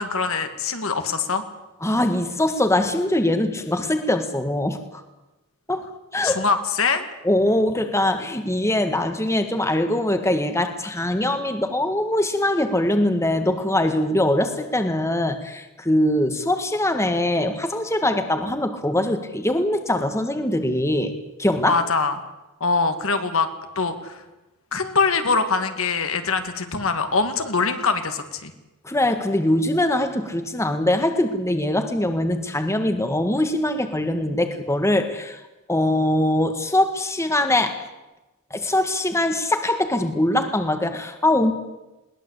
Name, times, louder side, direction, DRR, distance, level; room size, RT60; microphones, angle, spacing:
voice 1, 0.0-1.4 6.2-7.1 21.7-22.2 22.6-23.5 23.8-24.2 24.7-28.5, left 4 dB, 65° left, 7 dB, 2.5 m, -23 dB
voice 2, 1.8-5.0 5.7-6.4 7.2-21.1 21.4-21.8 28.8-35.4 35.7-37.8 38.5-41.5, left 1 dB, 15° left, 7 dB, 1.8 m, -22 dB
21.5 x 19.5 x 8.4 m, 1.0 s
head